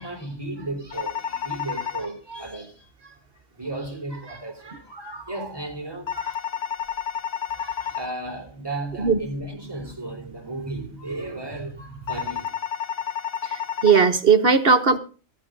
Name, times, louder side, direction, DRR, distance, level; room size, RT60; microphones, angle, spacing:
voice 1, 0.0-3.2 3.5-6.4 7.5-12.5, right 2 dB, 20° right, 3.7 m, -35 dB
sound 1, 0.9-2.1 6.1-8.1 12.1-14.1, left 8 dB, 70° left, 1.3 m, -30 dB
voice 2, 13.4-15.0, right 5 dB, 50° right, 1.1 m, -18 dB
15.0 x 14.0 x 3.9 m
omnidirectional pair, 1.3 m